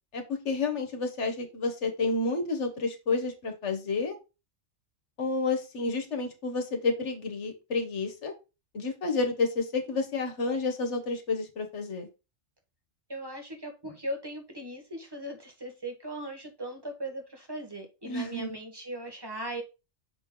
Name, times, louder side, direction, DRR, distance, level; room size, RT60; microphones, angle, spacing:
voice 1, 0.1-4.2 5.2-8.3 8.7-12.1 18.0-18.6, left 3 dB, 75° left, 5 dB, 1.5 m, -30 dB
voice 2, 13.1-19.6, right 1 dB, 20° right, 4 dB, 1.5 m, -38 dB
6.3 x 4.6 x 3.7 m, 0.28 s
omnidirectional pair, 1.2 m